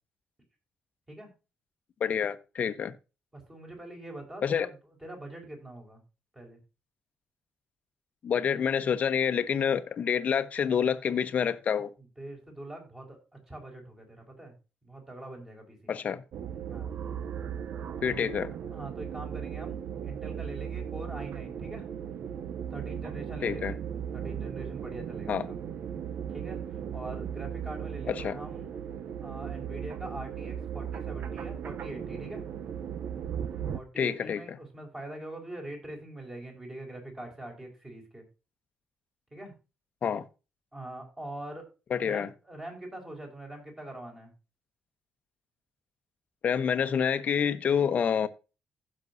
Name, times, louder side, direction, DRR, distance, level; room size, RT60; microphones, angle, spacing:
voice 1, 2.0-2.9 4.4-4.7 8.2-11.9 15.9-16.2 18.0-18.5 23.4-23.7 25.3-25.4 28.1-28.4 34.0-34.4 40.0-40.3 41.9-42.3 46.4-48.3, left 7 dB, 45° left, 1.0 m, -27 dB
voice 2, 3.3-6.0 6.3-6.6 12.2-13.2 13.5-14.5 14.8-15.9 16.7-16.9 18.2-18.3 18.7-21.9 22.7-23.8 24.1-25.6 26.3-28.7 29.2-32.4 33.7-38.2 39.3-39.5 40.7-41.7 42.0-44.3, right 1 dB, 15° right, 4.8 m, -43 dB
sound 1, 16.3-33.8, right 8 dB, 55° right, 0.7 m, -37 dB
16.0 x 6.1 x 2.7 m
cardioid pair, 135°, 4 cm